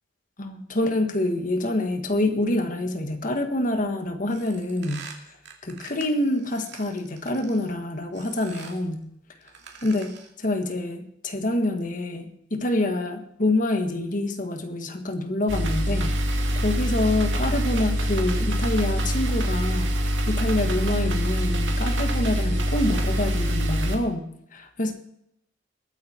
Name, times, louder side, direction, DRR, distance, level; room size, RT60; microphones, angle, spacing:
voice 1, 0.4-5.1 5.6-9.0 9.8-16.2 16.6-19.9 20.3-24.9, left 1 dB, 45° left, 6 dB, 1.5 m, -26 dB
sound 1, 4.3-7.7 8.1-8.9 9.4-10.4, right 6 dB, 65° right, 2.6 m, -45 dB
sound 2, 15.5-24.0, equal, 85° right, 2.3 m, -24 dB
21.0 x 8.9 x 4.4 m, 0.75 s
head